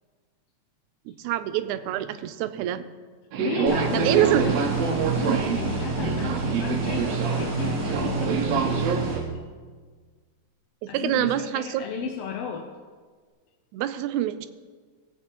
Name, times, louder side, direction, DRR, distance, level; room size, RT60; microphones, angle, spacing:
voice 1, 1.1-2.9 3.9-4.6 10.8-12.1 13.7-14.5, right 12 dB, 90° right, 12 dB, 2.0 m, -26 dB
Subway metro underground, 3.3-9.2, right 6 dB, 75° right, 1.8 m, -27 dB
voice 2, 3.4-8.8 10.9-12.7, left 7 dB, 75° left, 3 dB, 1.5 m, -34 dB
sound 1, 3.7-9.2, right 3 dB, 35° right, 4.0 m, -29 dB
17.0 x 8.1 x 2.9 m, 1.5 s
omnidirectional pair, 3.4 m